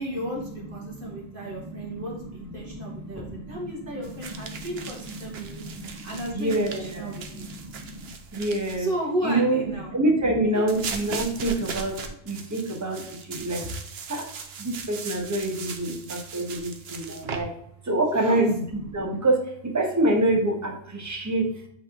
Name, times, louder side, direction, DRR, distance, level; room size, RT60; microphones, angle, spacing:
voice 1, 0.0-7.5 8.8-9.9 10.5-10.6 18.1-18.4, right 1 dB, 60° right, -2 dB, 1.7 m, -34 dB
voice 2, 0.5-4.7 5.0-8.9 9.2-13.7 14.1-14.3 14.6-17.5 17.8-21.6, right 1 dB, 15° right, 1 dB, 1.1 m, -27 dB
sound 1, 4.0-8.8 10.7-17.4, right 5 dB, 80° right, 1.0 m, -38 dB
8.0 x 3.4 x 3.7 m, 0.71 s
omnidirectional pair, 1.0 m